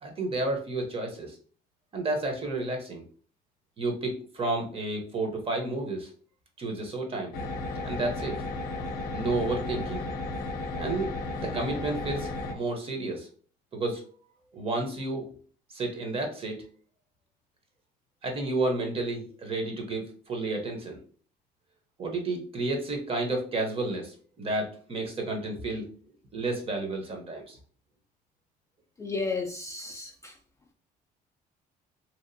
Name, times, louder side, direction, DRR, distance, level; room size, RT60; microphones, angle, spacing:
voice 1, 0.0-1.4 1.9-3.0 3.8-6.1 6.6-7.3 7.8-8.4 9.1-10.0 10.8-11.1 11.4-13.3 13.7-14.0 14.5-15.3 15.7-16.6 18.2-21.0 22.0-25.8 26.3-27.6, right 2 dB, 35° right, 2 dB, 0.8 m, -31 dB
sound 1, 7.3-12.5, left 2 dB, 65° left, 0.5 m, -34 dB
voice 2, 29.0-30.4, left 4 dB, 20° left, 2 dB, 0.3 m, -33 dB
2.9 x 2.4 x 2.6 m, 0.44 s
cardioid pair, 110°, 17 cm